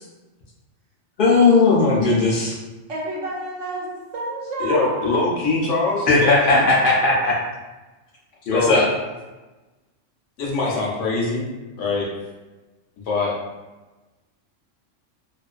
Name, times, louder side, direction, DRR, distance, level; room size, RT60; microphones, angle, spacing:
voice 1, 1.2-2.6 6.1-7.4 8.5-8.8, left 3 dB, 60° left, -4 dB, 0.6 m, -17 dB
voice 2, 2.9-3.9 4.1-5.2, right 2 dB, 90° right, -3 dB, 1.0 m, -29 dB
voice 3, 4.6-6.7 8.5-8.8 10.4-11.5 11.8-12.1 13.0-13.3, left 3 dB, 80° left, -3 dB, 1.0 m, -23 dB
2.4 x 2.3 x 2.3 m, 1.1 s
omnidirectional pair, 1.2 m